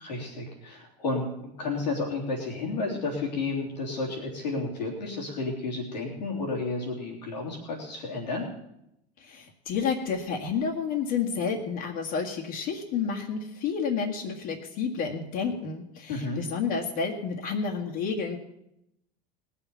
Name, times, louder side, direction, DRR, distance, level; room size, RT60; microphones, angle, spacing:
voice 1, 0.0-8.5 16.1-16.4, left 3 dB, 90° left, -2 dB, 3.6 m, -32 dB
voice 2, 9.2-18.4, left 6 dB, 65° left, -5 dB, 2.0 m, -30 dB
19.5 x 7.0 x 7.2 m, 0.83 s
hypercardioid pair, 85°, 21 cm